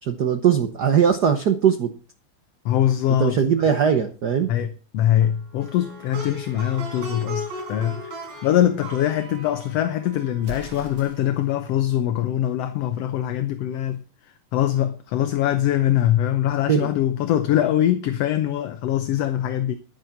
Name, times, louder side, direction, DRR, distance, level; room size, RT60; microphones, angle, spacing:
voice 1, 0.0-1.9 3.2-4.5 16.7-16.9, right 8 dB, 80° right, 0.9 m, -20 dB
voice 2, 2.6-3.4 4.5-4.7 4.9-8.1 8.4-14.0 14.5-19.8, left 12 dB, 70° left, 1.8 m, -22 dB
Plucked string instrument, 5.6-10.8, equal, 65° right, 5.0 m, -37 dB
Explosion, 10.4-11.5, right 2 dB, 40° right, 2.4 m, -40 dB
11.0 x 9.3 x 5.9 m
omnidirectional pair, 3.3 m